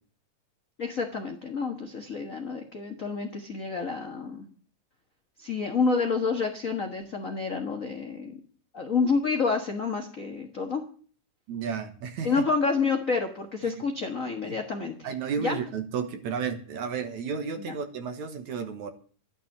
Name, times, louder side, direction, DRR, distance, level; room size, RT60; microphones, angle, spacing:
voice 1, 0.8-4.4 5.4-8.4 8.7-10.8 12.2-15.1 15.4-15.6 17.6-17.8, left 4 dB, 50° left, 3 dB, 0.9 m, -29 dB
voice 2, 11.5-12.3 13.6-13.7 14.4-14.6 15.0-18.9, right 6 dB, 65° right, 8 dB, 2.4 m, -32 dB
12.0 x 11.0 x 6.6 m, 0.43 s
omnidirectional pair, 3.9 m